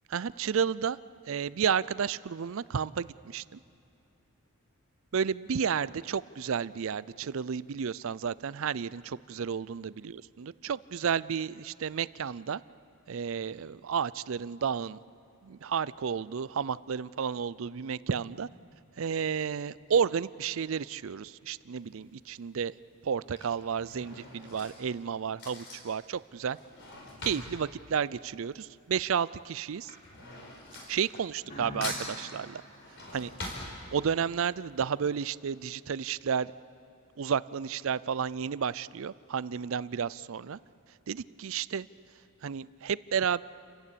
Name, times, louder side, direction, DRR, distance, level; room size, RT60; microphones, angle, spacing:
voice 1, 0.1-1.0 1.3-3.6 5.1-12.6 13.1-15.0 15.4-18.5 19.0-22.7 23.0-26.6 27.2-29.9 30.9-32.6 33.1-33.3 33.9-36.5 37.2-40.6 41.1-41.9 42.4-43.4, right 7 dB, 65° right, 19 dB, 0.4 m, -32 dB
Drawer open or close / Cutlery silverware, 21.8-22.2 23.0-28.9 29.2-31.6 31.8-34.3 34.8-34.9 35.1-35.2, left 2 dB, 55° left, 5.0 m, -43 dB
sound 1, 31.4-34.1, equal, 35° left, 1.9 m, -47 dB
29.5 x 15.5 x 8.5 m, 2.7 s
head